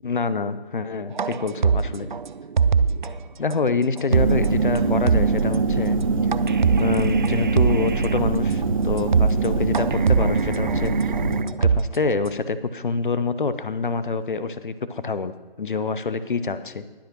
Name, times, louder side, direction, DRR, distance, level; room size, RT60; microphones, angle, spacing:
voice 1, 0.0-2.1 3.4-6.0 6.8-11.1 11.6-15.3 15.6-16.8, left 4 dB, 55° left, 13 dB, 0.7 m, -26 dB
sound 1, 1.2-3.1 3.5-3.6 4.0-4.5 4.8-4.9 5.1-5.5 6.3-8.2 8.6-8.7 9.0-9.5 9.7-12.3, right 5 dB, 50° right, 0.4 m, -22 dB
sound 2, 4.1-11.4, right 4 dB, 35° right, 1.0 m, -23 dB
20.5 x 7.9 x 3.0 m, 1.3 s
figure-of-eight pair, 145°, 30 cm